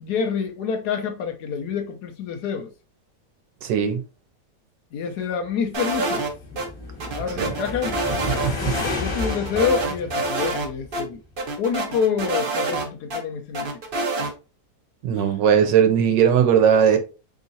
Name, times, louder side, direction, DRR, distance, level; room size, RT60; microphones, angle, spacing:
voice 1, 0.0-2.7 4.9-6.2 7.1-8.0 8.8-11.2 11.6-13.7 15.2-15.3, left 6 dB, 70° left, 1.2 m, -27 dB
voice 2, 3.6-4.0 7.4-7.5 8.4-8.7 15.0-17.0, right 8 dB, 85° right, 1.4 m, -18 dB
sound 1, 5.6-11.1, left 3 dB, 25° left, 0.8 m, -32 dB
sound 2, 5.7-6.7 7.0-8.5 8.7-8.8 9.2-10.7 10.9-11.0 11.4-13.2 13.5-14.3, right 2 dB, 45° right, 0.7 m, -27 dB
4.0 x 3.6 x 2.6 m
omnidirectional pair, 1.9 m